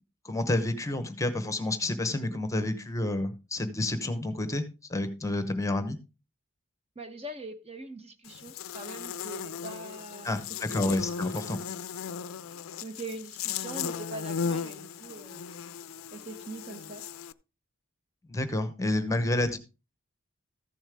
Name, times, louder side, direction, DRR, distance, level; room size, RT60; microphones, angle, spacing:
voice 1, 0.2-6.0 10.2-11.6 18.3-19.6, left 2 dB, 15° left, 10 dB, 0.9 m, -29 dB
voice 2, 6.9-10.4 10.7-11.0 12.8-15.4 16.1-17.0, right 2 dB, 30° right, 8 dB, 1.0 m, -42 dB
Buzz, 8.2-17.3, left 7 dB, 85° left, 0.5 m, -37 dB
14.5 x 7.2 x 3.5 m, 0.29 s
head